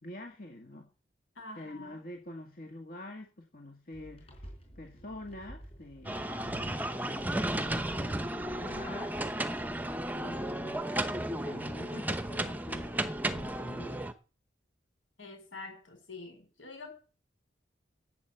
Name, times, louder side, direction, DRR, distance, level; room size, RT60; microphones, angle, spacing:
voice 1, 0.0-0.9 1.6-4.5 4.8-6.2 7.1-9.1 10.2-10.8 11.4-14.1, left 1 dB, 45° left, 3 dB, 1.9 m, -46 dB
voice 2, 1.4-2.0 15.2-16.9, left 3 dB, 85° left, 4 dB, 7.2 m, -46 dB
sound 1, 3.9-9.3, equal, 30° left, 4.5 m, -50 dB
sound 2, 6.0-14.1, right 1 dB, 10° right, 0.8 m, -34 dB
12.0 x 8.3 x 7.9 m, 0.36 s
head